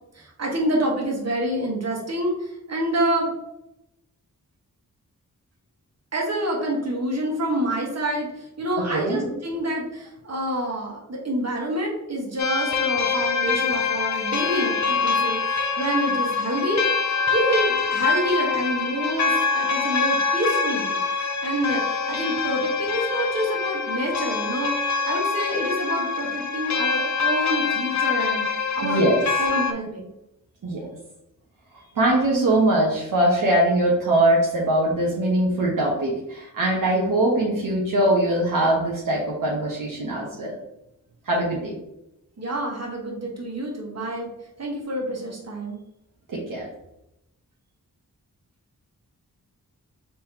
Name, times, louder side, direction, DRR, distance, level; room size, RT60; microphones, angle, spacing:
voice 1, 0.1-3.3 6.1-28.5 28.7-29.0 29.4-30.1 42.4-44.3 44.6-45.8, right 1 dB, 50° right, -1 dB, 1.5 m, -27 dB
voice 2, 8.8-9.3 28.8-29.2 30.6-30.9 31.9-40.6 41.3-41.8 46.3-46.7, right 1 dB, 70° right, -4 dB, 1.1 m, -22 dB
sound 1, 12.4-29.7, left 5 dB, 55° left, 0.7 m, -25 dB
4.3 x 3.7 x 2.9 m, 0.85 s
cardioid pair, 55°, 34 cm